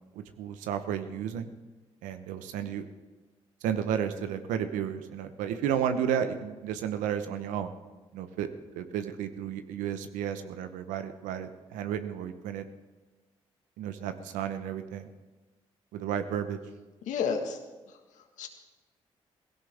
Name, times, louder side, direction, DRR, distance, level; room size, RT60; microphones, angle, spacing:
voice 1, 0.1-1.5 2.0-2.9 3.6-7.7 8.1-8.5 8.8-12.7 13.8-15.1 15.9-16.6, right 9 dB, 85° right, 9 dB, 1.0 m, -32 dB
voice 2, 17.0-17.6 17.9-18.5, left 6 dB, 75° left, 5 dB, 1.7 m, -32 dB
17.5 x 16.5 x 3.5 m, 1.2 s
supercardioid pair, 50°, 13 cm